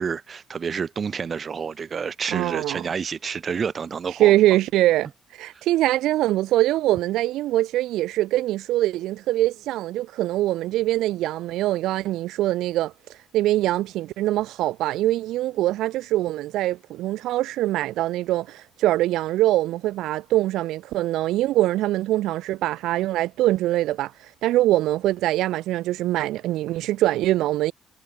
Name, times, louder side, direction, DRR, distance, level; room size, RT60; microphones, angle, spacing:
voice 1, 0.0-4.3, right 6 dB, 45° right, 1.5 m, -29 dB
voice 2, 2.3-2.8 4.2-12.9 13.3-24.1 24.4-27.7, right 15 dB, 70° right, 0.9 m, -23 dB
hypercardioid pair, 45°, 0 cm